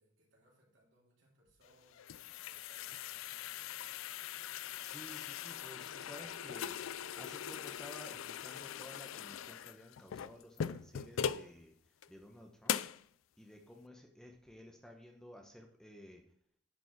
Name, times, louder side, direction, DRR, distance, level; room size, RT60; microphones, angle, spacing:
voice 1, 0.0-3.9, right 1 dB, 65° right, -3 dB, 3.4 m, -70 dB
sound 1, 1.7-11.5 12.0-12.1 12.7-13.0, left 9 dB, 85° left, 0.4 m, -41 dB
voice 2, 4.4-11.7 12.1-12.8 13.4-16.2, left 1 dB, 5° left, 2 dB, 1.0 m, -54 dB
10.5 x 5.2 x 4.7 m, 0.68 s
head